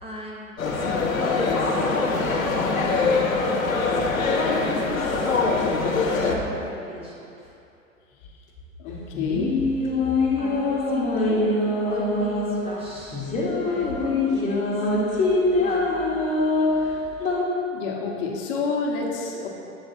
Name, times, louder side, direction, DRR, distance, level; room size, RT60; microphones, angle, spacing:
voice 1, 0.0-3.0 3.9-5.3 6.0-7.5 9.9-13.3 13.6-14.9 15.6-16.0 16.7-17.1, equal, 15° right, -5 dB, 0.7 m, -39 dB
sound 1, 0.6-6.3, left 3 dB, 85° left, 0.8 m, -23 dB
voice 2, 5.6-6.1 8.8-9.6 17.7-19.5, left 4 dB, 45° left, -1 dB, 1.0 m, -29 dB
sound 2, 8.9-17.4, left 2 dB, 15° left, 1.0 m, -24 dB
7.9 x 3.2 x 4.1 m, 2.6 s
figure-of-eight pair, 100°, 40 cm